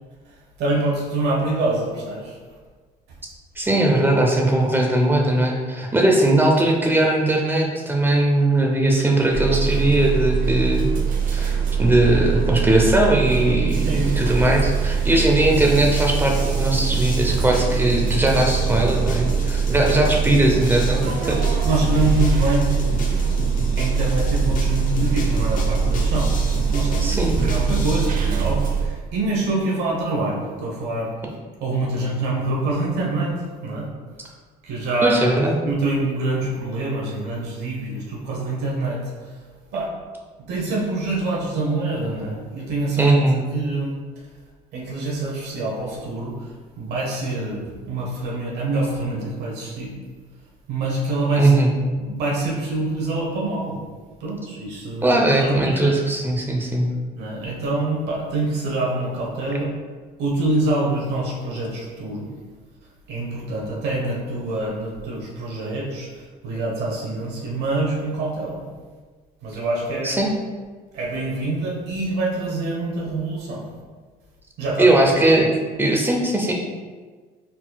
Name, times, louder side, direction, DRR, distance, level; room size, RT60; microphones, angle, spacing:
voice 1, 0.3-2.4 11.5-11.6 13.8-14.1 20.4-20.6 21.6-23.1 23.8-26.3 26.7-31.1 31.6-33.9 34.6-35.2 35.6-39.4 39.7-39.9 40.5-43.1 43.5-43.9 44.7-49.9 50.7-51.5 52.0-53.8 54.2-56.0 57.1-59.7 60.2-62.3 63.1-68.6 69.4-70.2 70.9-73.6 74.6-75.3, right 2 dB, 80° right, -3 dB, 1.0 m, -25 dB
voice 2, 3.6-10.9 11.3-21.6 27.0-27.4 35.0-35.6 43.0-43.4 51.4-51.7 55.0-56.9 70.0-70.3 74.8-75.5 75.8-76.5, right 1 dB, 10° right, 0 dB, 0.7 m, -19 dB
sound 1, 9.3-28.9, right 6 dB, 55° right, 0.7 m, -22 dB
sound 2, 15.6-28.1, left 2 dB, 50° left, 0.8 m, -32 dB
4.3 x 3.9 x 2.3 m, 1.4 s
cardioid pair, 110°, 17 cm